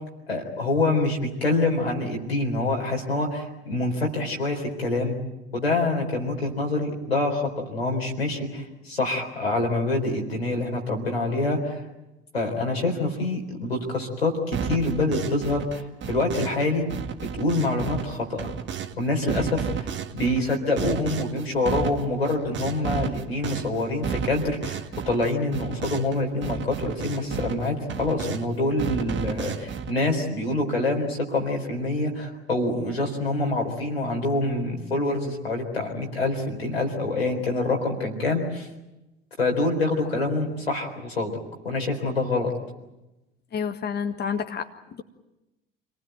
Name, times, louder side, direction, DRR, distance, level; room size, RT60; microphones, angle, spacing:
voice 1, 0.3-5.2 5.5-11.8 12.3-16.8 17.3-18.5 19.0-19.9 20.1-38.7 39.4-41.4 41.6-42.5, left 2 dB, 90° left, 0 dB, 4.0 m, -26 dB
sound 1, 14.5-16.6 16.9-18.9 19.3-26.2 26.4-28.5 28.8-29.9, right 7 dB, 40° right, 1.6 m, -32 dB
voice 2, 43.5-45.0, left 6 dB, 35° left, 5 dB, 1.6 m, -30 dB
27.0 x 19.0 x 9.2 m, 0.98 s
figure-of-eight pair, 65°, 30 cm